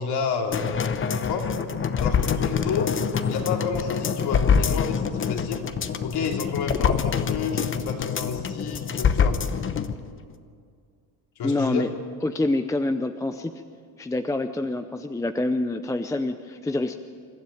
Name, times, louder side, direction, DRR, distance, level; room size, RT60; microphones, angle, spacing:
voice 1, 0.0-1.5 2.0-2.9 3.2-5.6 6.0-9.4 11.4-11.9, left 5 dB, 60° left, 2 dB, 3.1 m, -30 dB
sound 1, 0.5-9.9 10.3-10.4, left 6 dB, 30° left, 1.0 m, -25 dB
voice 2, 11.4-11.9 12.2-13.5 14.0-16.9, left 2 dB, 10° left, 8 dB, 0.5 m, -26 dB
28.0 x 12.5 x 9.1 m, 2.2 s
cardioid pair, 130°, 43 cm